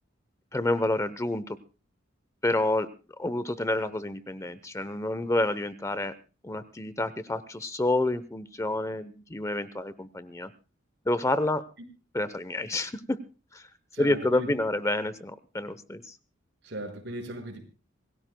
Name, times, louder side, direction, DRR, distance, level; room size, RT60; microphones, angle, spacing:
voice 1, 0.5-1.6 2.4-2.9 3.2-6.1 6.4-10.5 11.1-11.6 12.1-13.2 13.5-13.7 14.0-16.2, left 2 dB, 15° left, 14 dB, 0.7 m, -28 dB
voice 2, 13.9-14.5 16.6-17.6, right 1 dB, 60° right, 3 dB, 5.3 m, -37 dB
26.0 x 17.5 x 2.2 m, 0.34 s
head